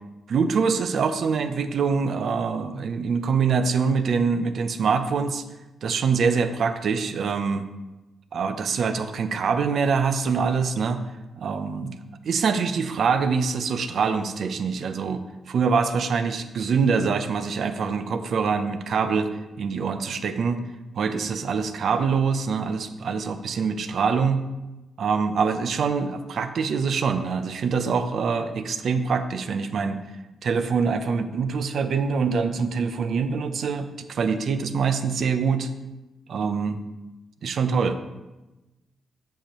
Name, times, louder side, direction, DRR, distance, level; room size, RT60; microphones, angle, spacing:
voice 1, 0.3-5.4 5.8-7.7 8.3-11.0 11.4-12.0 12.2-20.6 21.0-24.4 25.0-30.0 30.4-35.7 36.3-36.8 37.4-38.0, right 5 dB, 65° right, 9 dB, 0.5 m, -24 dB
7.8 x 6.6 x 3.0 m, 1.1 s
cardioid pair, 100°, 0 cm